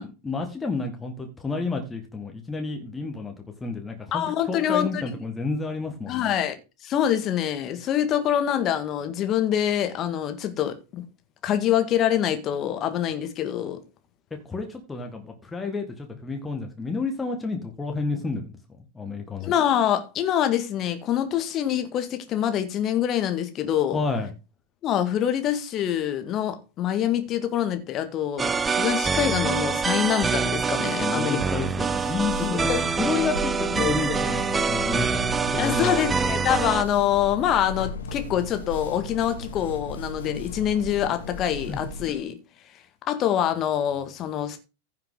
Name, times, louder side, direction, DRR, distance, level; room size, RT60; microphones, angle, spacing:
voice 1, 0.0-3.3 3.6-6.3 14.5-18.6 18.9-19.5 23.9-24.3 31.0-35.2 35.5-36.1 41.7-41.8, left 4 dB, 10° left, 1.8 m, -30 dB
voice 2, 4.1-5.1 6.1-6.6 6.8-11.0 11.4-13.8 19.4-24.0 24.8-31.4 32.4-32.9 33.1-33.3 33.8-34.2 35.6-42.4 43.1-44.6, left 10 dB, 30° left, 1.8 m, -25 dB
sound 1, 28.4-36.8, right 5 dB, 15° right, 0.6 m, -25 dB
sound 2, 31.7-42.3, left 3 dB, 65° left, 2.2 m, -36 dB
15.5 x 5.7 x 3.9 m
figure-of-eight pair, 90°, 0 cm